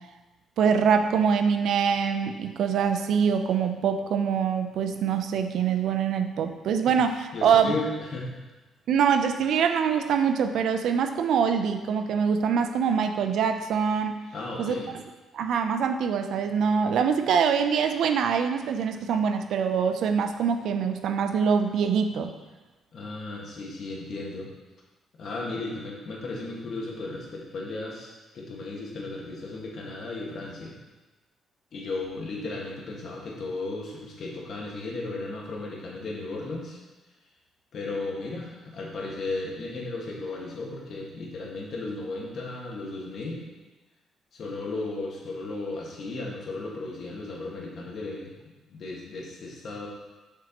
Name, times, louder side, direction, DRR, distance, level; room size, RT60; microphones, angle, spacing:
voice 1, 0.6-7.7 8.9-14.2 14.6-14.7 15.3-22.3, right 7 dB, 75° right, 7 dB, 0.5 m, -24 dB
voice 2, 7.3-8.4 14.3-14.9 22.9-24.5 25.2-30.7 31.7-36.8 37.7-43.4 44.3-48.3 48.7-49.9, left 2 dB, 60° left, -2 dB, 1.6 m, -35 dB
7.0 x 6.0 x 3.0 m, 1.2 s
cardioid pair, 90°, 0 cm